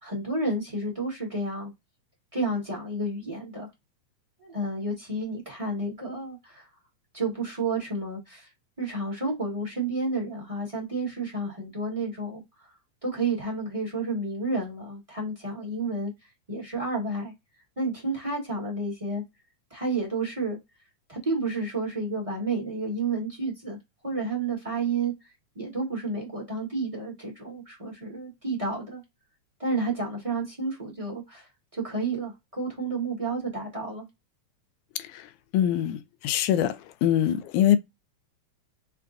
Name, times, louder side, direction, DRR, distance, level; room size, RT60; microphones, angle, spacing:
voice 1, 0.0-1.7 2.3-3.7 4.4-6.7 7.1-8.5 8.8-12.7 13.0-16.1 16.5-17.3 17.8-19.2 19.7-20.6 21.1-23.8 24.0-29.0 29.6-34.1, right 2 dB, 20° right, 1.0 m, -31 dB
voice 2, 35.5-37.8, left 11 dB, 80° left, 1.9 m, -23 dB
5.7 x 2.3 x 2.4 m
omnidirectional pair, 3.5 m